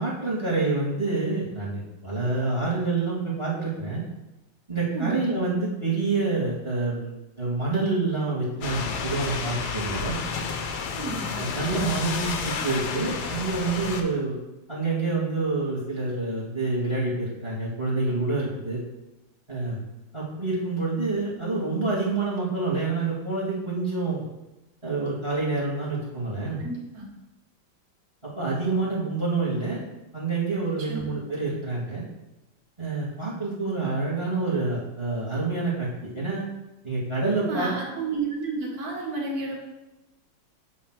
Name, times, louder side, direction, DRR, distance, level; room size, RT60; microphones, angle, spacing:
voice 1, 0.0-4.0 4.7-10.2 11.3-14.3 14.7-18.8 19.5-19.8 20.1-24.2 24.8-26.6 28.3-29.8 30.1-32.0 32.8-35.9 36.1-36.4 36.8-37.7, right 3 dB, 15° right, -5 dB, 1.6 m, -27 dB
sound 1, 8.6-14.0, left 5 dB, 65° left, 1.2 m, -31 dB
voice 2, 11.0-11.3 26.6-27.0 30.8-31.1 37.4-39.6, right 3 dB, 50° right, -5 dB, 2.3 m, -31 dB
8.3 x 3.1 x 6.0 m, 1.0 s
omnidirectional pair, 2.1 m